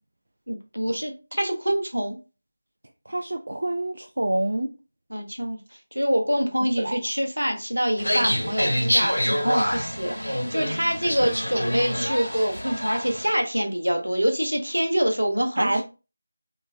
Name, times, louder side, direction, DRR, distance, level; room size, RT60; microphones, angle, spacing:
voice 1, 0.5-2.2 5.1-5.6 5.9-15.8, equal, 80° right, 4 dB, 0.8 m, -25 dB
voice 2, 3.1-4.7 6.8-7.0 15.6-15.8, right 1 dB, 55° right, 4 dB, 0.3 m, -26 dB
sound 1, 8.0-13.3, equal, 75° left, 1.5 m, -26 dB
3.2 x 3.0 x 2.3 m, 0.31 s
figure-of-eight pair, 165°, 0 cm